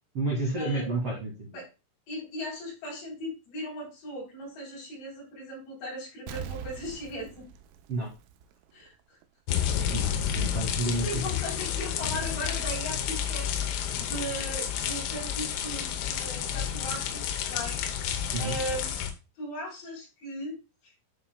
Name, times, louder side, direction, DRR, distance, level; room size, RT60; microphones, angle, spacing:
voice 1, 0.1-1.5 7.9-8.1 9.9-11.2 18.3-18.5, right 2 dB, 60° right, -2 dB, 1.5 m, -30 dB
voice 2, 2.1-7.4 8.7-8.9 10.3-10.6 11.0-13.5 13.9-17.2 17.5-18.9 19.4-20.6 20.8-20.9, equal, 65° left, -3 dB, 5.5 m, -38 dB
Explosion, 6.3-8.9 9.2-9.3, right 9 dB, 90° right, 3.3 m, -42 dB
sound 1, 9.5-19.1, left 9 dB, 80° left, 3.4 m, -30 dB
11.0 x 5.7 x 2.2 m, 0.29 s
omnidirectional pair, 5.6 m